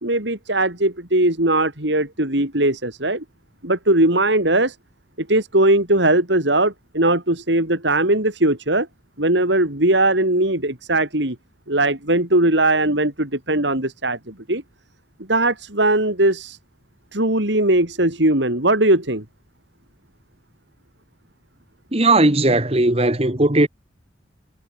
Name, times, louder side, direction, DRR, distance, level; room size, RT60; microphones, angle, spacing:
voice 1, 0.0-3.2 3.6-4.8 5.2-8.9 9.2-11.4 11.7-14.6 15.3-16.6 17.1-19.2, right 1 dB, 65° right, 4.9 m, -19 dB
voice 2, 21.9-23.7, right 2 dB, 30° right, 1.8 m, -17 dB
head